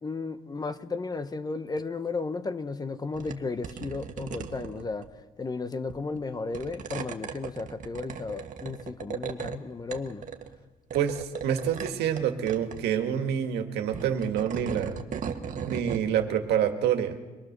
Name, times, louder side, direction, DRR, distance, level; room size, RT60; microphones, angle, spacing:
voice 1, 0.0-5.1 5.4-10.3, left 4 dB, 25° left, 11 dB, 1.1 m, -34 dB
sound 1, 3.1-3.4 3.6-5.1 5.9-6.2 6.5-9.6 9.9-10.6 10.9-12.2 12.5-12.8 13.8-16.1, right 7 dB, 50° right, 1.6 m, -37 dB
voice 2, 10.9-15.0 15.7-17.2, right 9 dB, 75° right, 6 dB, 1.9 m, -27 dB
24.5 x 19.0 x 6.8 m, 1.3 s
cardioid pair, 110°, 17 cm